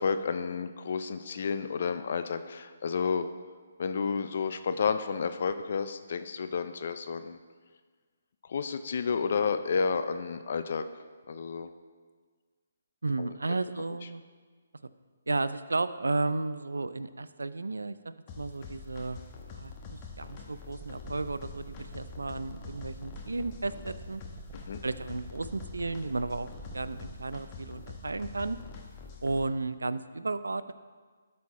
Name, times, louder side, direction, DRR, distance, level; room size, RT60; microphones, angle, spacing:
voice 1, 0.0-3.3 3.8-7.4 8.5-11.7 13.2-13.3 24.7-24.8, left 5 dB, 55° left, 10 dB, 0.5 m, -31 dB
voice 2, 13.0-14.2 15.3-19.2 19.5-24.2 24.8-28.6 29.2-30.7, right 3 dB, 85° right, 13 dB, 0.3 m, -33 dB
sound 1, 18.3-29.4, left 4 dB, 30° left, 1.1 m, -45 dB
sound 2, 20.8-27.2, right 4 dB, 25° right, 1.0 m, -49 dB
12.5 x 4.2 x 4.2 m, 1.5 s
figure-of-eight pair, 145°, 0 cm